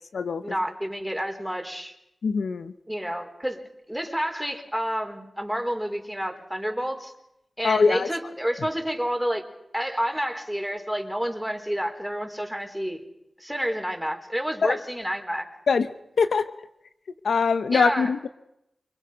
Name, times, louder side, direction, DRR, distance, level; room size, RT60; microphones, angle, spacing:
voice 1, 0.4-1.9 2.9-3.6 3.9-7.1 7.6-9.4 9.7-13.0 13.4-15.5 17.7-18.1, equal, 5° right, 4 dB, 4.4 m, -29 dB
voice 2, 2.2-2.7 7.6-8.1 14.6-14.8 15.7-15.9 16.2-16.5 17.2-18.3, left 5 dB, 85° left, 11 dB, 0.8 m, -22 dB
29.0 x 23.5 x 5.3 m, 0.83 s
cardioid pair, 50°, 0 cm